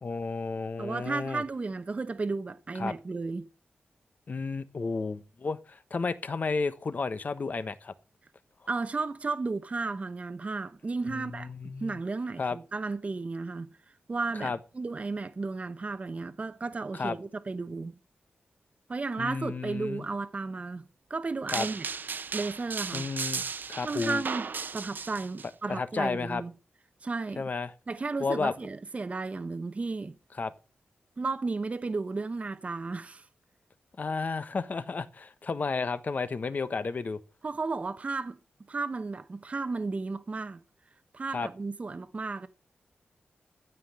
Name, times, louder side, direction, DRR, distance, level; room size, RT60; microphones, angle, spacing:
voice 1, 0.0-1.4 2.8-2.9 4.3-7.9 11.1-12.0 12.4-12.6 14.4-14.6 16.9-17.2 19.2-20.1 21.5-21.7 22.9-24.2 25.7-26.4 27.4-27.7 28.2-28.5 30.4-30.5 34.0-37.2 41.3-41.5, left 4 dB, 45° left, 1.1 m, -32 dB
voice 2, 0.8-3.4 8.7-11.5 11.8-17.9 18.9-21.9 22.3-23.1 23.8-26.5 27.0-27.5 27.9-30.2 31.2-33.3 37.4-38.4 38.7-40.6 41.1-42.5, right 3 dB, 35° right, 0.9 m, -34 dB
sound 1, 21.5-25.5, right 5 dB, 60° right, 1.0 m, -35 dB
15.0 x 5.7 x 10.0 m
wide cardioid pair, 105°, 4 cm